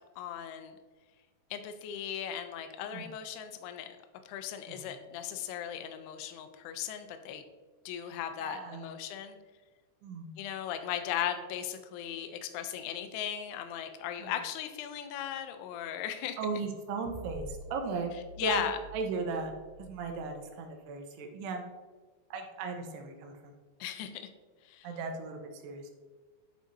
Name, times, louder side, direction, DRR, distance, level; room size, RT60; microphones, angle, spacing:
voice 1, 0.2-0.8 1.5-3.9 4.3-7.4 7.9-9.4 10.4-16.4 18.4-18.8 23.8-24.3 24.7-24.9, left 9 dB, 80° left, 8 dB, 2.5 m, -37 dB
voice 2, 8.4-8.9 10.0-10.3 14.2-14.3 16.4-18.1 18.4-18.7 18.9-19.5 19.8-21.6 22.3-23.5 24.8-25.9, right 4 dB, 80° right, 4 dB, 2.8 m, -37 dB
sound 1, 17.0-20.4, right 2 dB, 60° right, 2.8 m, -48 dB
10.0 x 4.7 x 2.7 m, 1.3 s
omnidirectional pair, 4.9 m